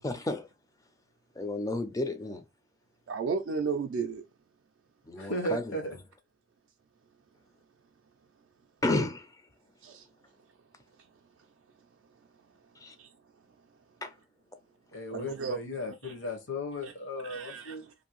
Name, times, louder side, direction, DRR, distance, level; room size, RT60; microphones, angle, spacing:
voice 1, 0.0-0.5 1.4-2.4 5.1-5.6 8.8-9.2 12.8-12.9 14.0-14.1, left 2 dB, 15° left, 0.3 m, -31 dB
voice 2, 3.1-4.2 9.8-10.1 13.0-13.1 15.1-15.6 16.0-16.1 16.8-16.9 17.2-17.9, right 5 dB, 65° right, 0.3 m, -34 dB
voice 3, 5.2-6.0 14.9-17.8, left 1 dB, 70° left, 0.8 m, -35 dB
2.6 x 2.6 x 2.9 m
head